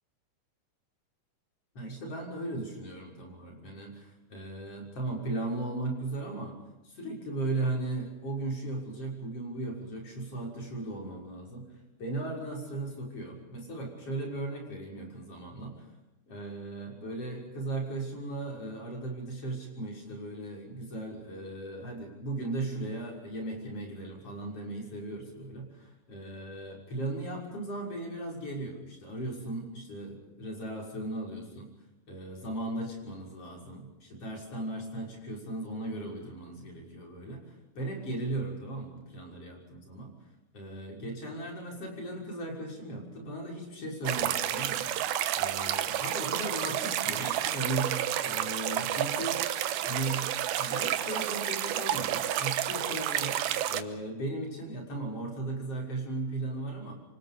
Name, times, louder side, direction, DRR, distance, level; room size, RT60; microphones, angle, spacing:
voice 1, 1.8-6.6 6.8-11.7 12.0-15.9 16.3-31.7 32.1-40.1 40.5-44.9 45.4-49.5 49.8-50.2 50.6-53.4 53.7-56.9, right 2 dB, 35° left, 0 dB, 7.1 m, -37 dB
sound 1, 44.0-53.8, right 11 dB, 75° right, 2.8 m, -30 dB
28.5 x 25.0 x 5.3 m, 1.0 s
omnidirectional pair, 4.6 m